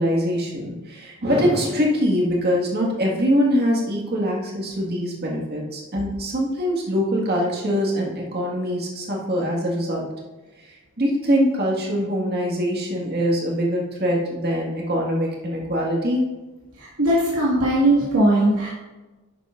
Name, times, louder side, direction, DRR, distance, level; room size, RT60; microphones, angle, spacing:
voice 1, 0.0-10.0 10.7-16.2, equal, 45° right, -2 dB, 2.0 m, -23 dB
voice 2, 17.0-18.7, right 1 dB, 85° right, -7 dB, 2.2 m, -18 dB
11.5 x 8.1 x 2.6 m, 1.1 s
head